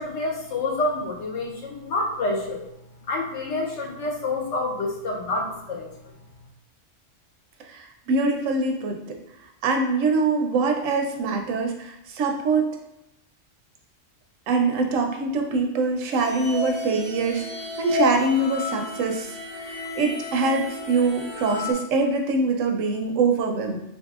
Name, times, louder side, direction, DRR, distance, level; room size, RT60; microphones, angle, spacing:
voice 1, 0.0-2.7 3.1-6.1, left 2 dB, 70° left, -1 dB, 0.9 m, -28 dB
voice 2, 7.7-9.2 9.6-12.7 14.5-17.4 17.8-19.3 19.6-23.8, right 3 dB, 85° right, 3 dB, 1.0 m, -24 dB
sound 1, 16.1-21.7, left 3 dB, 55° left, 0.3 m, -32 dB
4.0 x 2.6 x 2.4 m, 0.86 s
omnidirectional pair, 1.3 m